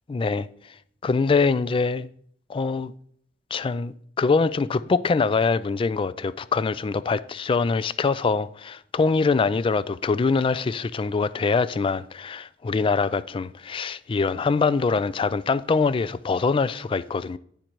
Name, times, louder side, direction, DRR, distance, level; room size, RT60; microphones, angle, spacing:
voice 1, 0.1-0.5 1.0-2.1 2.5-2.9 3.5-17.4, left 4 dB, 30° left, 0.3 m, -24 dB
10.0 x 5.2 x 4.5 m
head